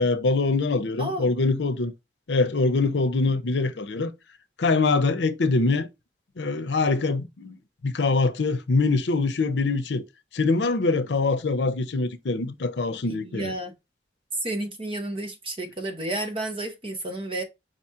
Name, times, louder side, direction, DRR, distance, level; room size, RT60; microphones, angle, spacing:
voice 1, 0.0-1.9 2.3-4.1 4.6-5.9 6.4-7.5 7.8-10.0 10.3-13.6, left 3 dB, 85° left, 0.6 m, -24 dB
voice 2, 1.0-1.3 13.1-13.7 14.4-17.4, right 1 dB, 30° right, 1.0 m, -31 dB
5.0 x 2.9 x 3.6 m
head